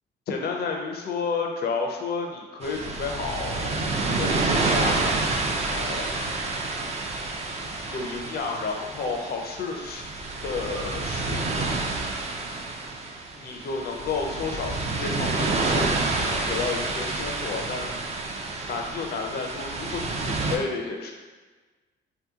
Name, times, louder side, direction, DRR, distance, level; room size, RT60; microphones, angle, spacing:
voice 1, 0.3-5.1 5.7-6.1 7.9-10.1 10.4-11.7 13.4-18.0 18.7-21.1, left 4 dB, 55° left, 1 dB, 0.5 m, -31 dB
sound 1, 2.6-20.6, right 3 dB, 35° right, 0.4 m, -29 dB
2.8 x 2.2 x 3.5 m, 1.3 s
cardioid pair, 90°, 20 cm